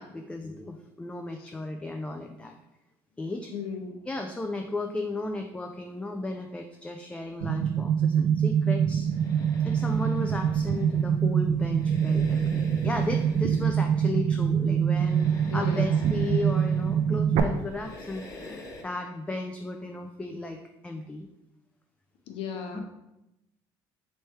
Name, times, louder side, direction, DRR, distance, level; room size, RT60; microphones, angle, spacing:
voice 1, 0.0-2.5 3.2-3.5 4.1-9.1 9.6-20.6 20.8-21.3 22.7-22.8, left 2 dB, 10° left, 4 dB, 0.3 m, -35 dB
voice 2, 3.5-4.0 15.5-16.0 22.3-22.8, left 6 dB, 65° left, 4 dB, 0.7 m, -35 dB
sound 1, 7.4-17.4, right 8 dB, 75° right, 0.4 m, -25 dB
sound 2, 8.9-18.8, left 2 dB, 35° left, 1.0 m, -46 dB
3.2 x 3.1 x 4.3 m, 0.90 s
supercardioid pair, 95°, 10 cm